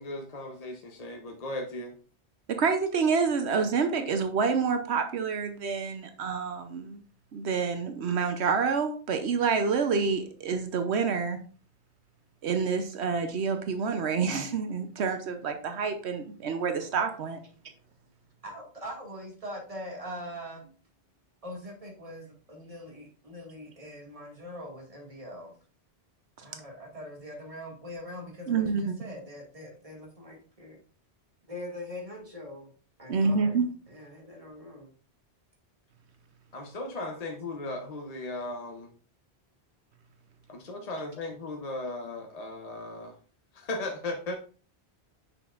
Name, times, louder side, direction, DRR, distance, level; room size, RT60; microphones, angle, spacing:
voice 1, 0.0-1.9 36.5-38.9 40.5-43.1 43.5-44.4, left 2 dB, 40° left, 2 dB, 0.8 m, -36 dB
voice 2, 2.6-7.0 7.3-11.4 12.4-17.4 28.5-28.9 33.1-33.6, right 5 dB, 80° right, 7 dB, 1.0 m, -28 dB
voice 3, 18.4-20.7 21.4-25.5 26.4-30.8 31.5-32.7 33.0-33.6 33.9-34.9, equal, 30° right, -1 dB, 2.1 m, -42 dB
6.6 x 6.1 x 2.4 m, 0.39 s
omnidirectional pair, 1.1 m